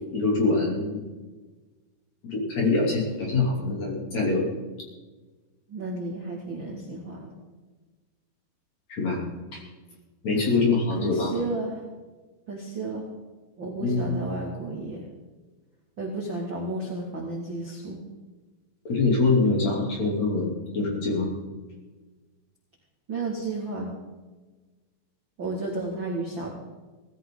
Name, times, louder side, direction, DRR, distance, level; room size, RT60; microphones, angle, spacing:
voice 1, 0.1-1.0 2.2-4.5 8.9-9.2 9.5-9.6 10.2-11.4 13.8-14.2 18.9-21.3, left 3 dB, 40° left, -2 dB, 3.8 m, -24 dB
voice 2, 5.7-7.3 10.3-10.5 11.0-11.8 12.5-13.1 13.6-15.0 16.0-18.0 23.1-23.9 25.4-26.5, right 2 dB, 40° right, -3 dB, 1.9 m, -32 dB
18.5 x 15.5 x 3.9 m, 1.3 s
omnidirectional pair, 5.3 m